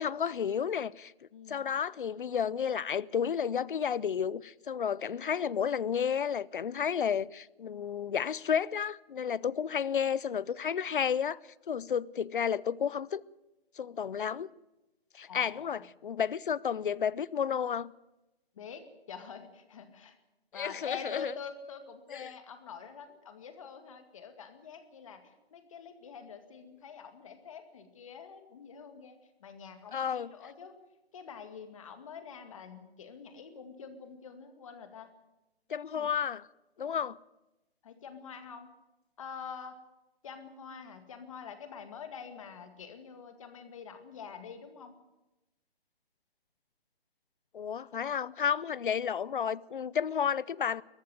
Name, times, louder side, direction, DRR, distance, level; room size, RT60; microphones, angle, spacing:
voice 1, 0.0-1.1 1.5-11.4 11.7-13.2 13.8-14.5 15.1-17.9 20.5-21.3 22.1-22.3 29.9-30.3 35.7-36.5 36.8-37.2 47.5-50.8, left 7 dB, 55° left, 0.7 m, -31 dB
voice 2, 1.3-1.7 15.2-15.8 18.6-20.2 20.5-30.7 31.1-35.1 35.9-36.1 37.8-38.7 39.2-39.8 40.2-44.9, left 6 dB, 30° left, 2.2 m, -46 dB
21.5 x 14.0 x 9.4 m
hypercardioid pair, 165°, 31 cm